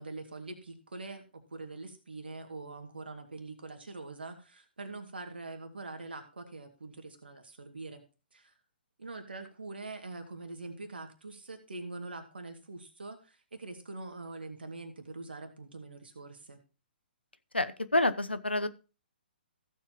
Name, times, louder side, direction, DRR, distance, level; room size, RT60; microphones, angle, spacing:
voice 1, 0.0-8.0 8.3-8.5 9.0-16.6, right 3 dB, 70° right, 6 dB, 2.1 m, -44 dB
voice 2, 17.5-18.7, left 2 dB, 90° left, 14 dB, 0.8 m, -28 dB
15.5 x 7.3 x 2.9 m, 0.33 s
figure-of-eight pair, 125°, 6 cm